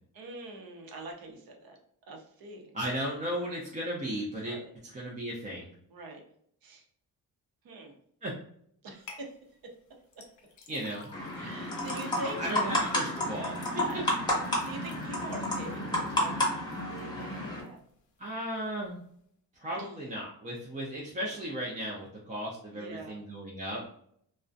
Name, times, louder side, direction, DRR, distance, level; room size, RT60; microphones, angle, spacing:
voice 1, 0.1-1.8 2.1-2.7 4.4-4.7 5.9-6.2 6.6-6.8 7.6-7.9 8.8-9.3 11.4-12.8 13.8-16.4 16.9-17.8 19.7-19.9 21.2-21.4 22.7-23.2, right 2 dB, 65° right, 2 dB, 0.7 m, -44 dB
voice 2, 2.7-4.6 4.9-5.7 8.2-8.3 10.7-11.1 11.4-11.5 12.4-13.8 18.2-19.0 19.6-23.8, right 1 dB, 20° right, -4 dB, 0.4 m, -35 dB
sound 1, 9.1-9.2 10.1-16.3 16.7-17.2 17.7-17.8, left 3 dB, 50° left, 0.6 m, -48 dB
sound 2, 11.1-17.6, left 1 dB, 10° left, 0.7 m, -31 dB
2.4 x 2.1 x 2.5 m, 0.66 s
cardioid pair, 125°, 38 cm